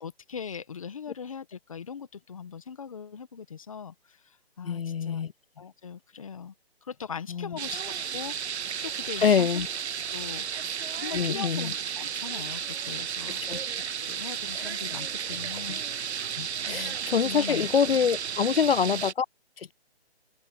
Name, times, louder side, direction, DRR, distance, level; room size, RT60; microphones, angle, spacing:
voice 1, 0.0-5.2 5.6-6.5 6.8-9.6 10.1-10.4 10.9-13.4 14.0-15.8 16.7-17.0 17.2-17.7 18.9-19.0, left 6 dB, 30° left, 1.6 m, -40 dB
voice 2, 4.6-5.3 7.3-7.6 9.2-9.7 11.1-11.7 13.5-13.6 14.5-14.7 16.4-19.3 19.6-19.7, left 7 dB, 60° left, 0.5 m, -25 dB
sound 1, 7.6-19.1, right 8 dB, 75° right, 0.7 m, -33 dB
open air
hypercardioid pair, 175°, 33 cm